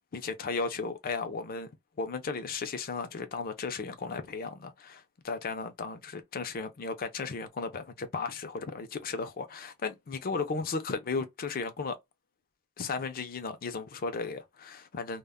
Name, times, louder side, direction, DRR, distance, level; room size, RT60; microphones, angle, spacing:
voice 1, 0.1-1.7 2.0-11.9 12.8-15.2, left 4 dB, 45° left, 0.5 m, -35 dB
2.1 x 2.0 x 3.5 m
head